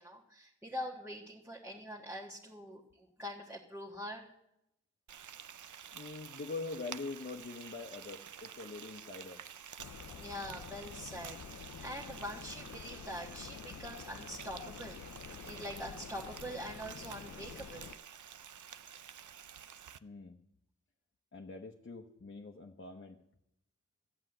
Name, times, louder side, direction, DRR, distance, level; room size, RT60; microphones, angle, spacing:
voice 1, 0.0-4.3 10.1-15.0 15.5-17.9, equal, 10° right, -3 dB, 1.3 m, -44 dB
Frying (food), 5.1-20.0, right 8 dB, 85° right, 0.5 m, -50 dB
voice 2, 5.9-9.4 20.0-20.4 21.3-23.2, left 3 dB, 40° left, 2 dB, 0.9 m, -44 dB
sound 1, 9.8-18.0, left 7 dB, 70° left, 0.5 m, -49 dB
14.5 x 8.1 x 7.8 m, 0.83 s
wide cardioid pair, 75°, 30 cm